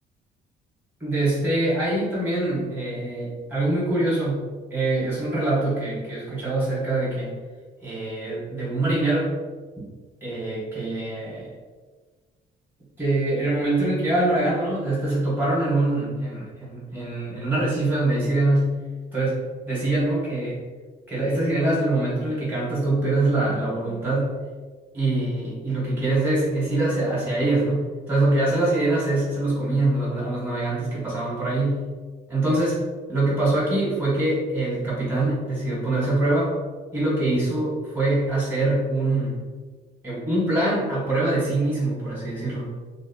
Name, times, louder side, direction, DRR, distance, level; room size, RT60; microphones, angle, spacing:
voice 1, 1.0-7.3 7.8-9.3 9.8-9.9 10.2-11.5 13.0-18.8 19.1-20.6 21.1-24.4 24.9-31.9 32.3-36.5 36.9-39.4 40.0-42.7, right 2 dB, 10° right, -7 dB, 1.2 m, -24 dB
2.7 x 2.1 x 2.7 m, 1.4 s
cardioid pair, 90°, 20 cm